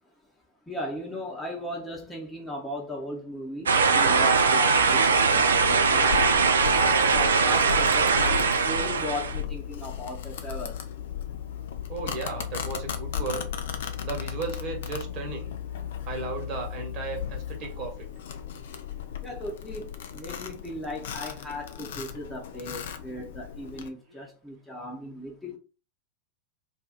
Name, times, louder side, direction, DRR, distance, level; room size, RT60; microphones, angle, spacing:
voice 1, 0.7-6.3 7.1-10.7 19.2-25.6, left 1 dB, 5° left, 0.7 m, -37 dB
sound 1, 3.7-9.4, right 5 dB, 70° right, 0.3 m, -21 dB
Domestic sounds home sounds, 4.8-23.9, left 9 dB, 60° left, 0.4 m, -36 dB
voice 2, 11.9-13.5 14.0-15.5 16.0-18.1 24.1-24.3, right 4 dB, 40° right, 1.1 m, -35 dB
2.5 x 2.3 x 3.9 m
figure-of-eight pair, 90°, 0 cm